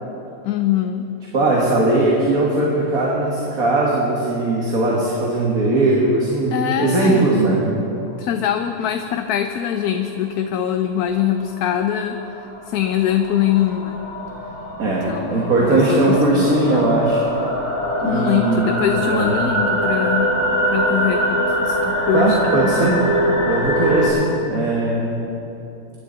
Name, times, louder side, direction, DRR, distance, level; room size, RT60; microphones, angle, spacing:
voice 1, 0.4-1.1 6.5-7.3 8.2-14.0 14.9-16.9 18.0-20.3 20.7-22.7, left 9 dB, 75° left, 6 dB, 1.1 m, -23 dB
voice 2, 1.3-7.6 14.8-17.2 18.0-18.8 19.1-19.4 22.1-23.0 23.4-25.2, right 2 dB, 65° right, -4 dB, 2.3 m, -19 dB
sound 1, 11.4-24.1, equal, 25° left, 4.0 m, -23 dB
25.0 x 11.5 x 4.0 m, 2.9 s
omnidirectional pair, 1.7 m